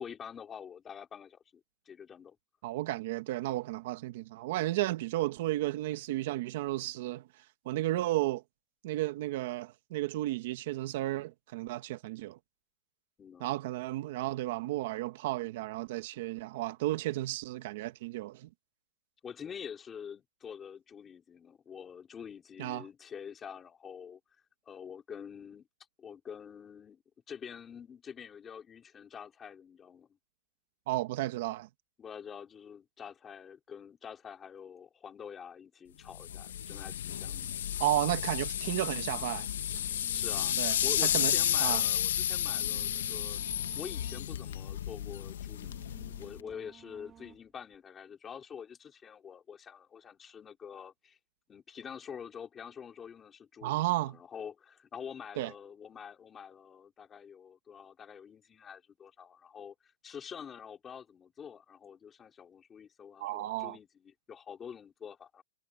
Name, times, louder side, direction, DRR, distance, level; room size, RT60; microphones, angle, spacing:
voice 1, 0.0-2.4 13.2-13.5 19.2-24.2 24.7-25.7 26.0-27.0 27.3-30.1 32.0-37.5 40.1-43.4 43.7-51.2 51.5-65.4, left 7 dB, 15° left, 4.3 m, -46 dB
voice 2, 2.6-7.2 7.6-8.4 8.8-12.4 13.4-18.5 22.6-22.9 30.9-31.7 37.8-39.5 40.6-40.8 41.0-41.8 53.6-54.2 55.4-55.5 63.2-63.8, right 16 dB, 45° right, 1.0 m, -33 dB
sound 1, 36.1-46.4, left 10 dB, 85° left, 1.0 m, -32 dB
sound 2, 39.7-47.8, right 9 dB, 15° right, 1.5 m, -56 dB
supercardioid pair, 175°, 0 cm